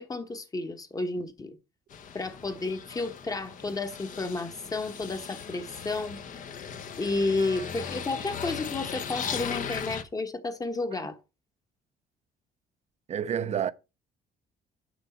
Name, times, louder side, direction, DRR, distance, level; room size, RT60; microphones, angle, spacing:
voice 1, 0.0-1.6 2.1-6.2 7.0-11.2, left 3 dB, 20° left, 1.2 m, -32 dB
sound 1, 1.9-10.0, left 7 dB, 50° left, 1.1 m, -38 dB
voice 2, 13.1-13.7, right 9 dB, 40° right, 0.7 m, -30 dB
6.7 x 6.3 x 5.5 m
cardioid pair, 110°, 17 cm